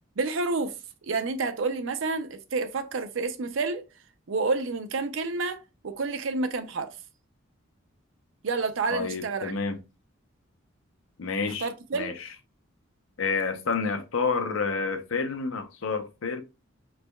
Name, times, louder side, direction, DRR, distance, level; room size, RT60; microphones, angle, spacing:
voice 1, 0.2-0.7 1.0-3.8 4.3-6.9 8.4-9.5 11.5-12.2, right 3 dB, 75° right, 0.5 m, -29 dB
voice 2, 8.9-9.8 11.2-12.3 13.2-16.4, left 4 dB, 85° left, 0.7 m, -29 dB
5.1 x 3.3 x 2.3 m
head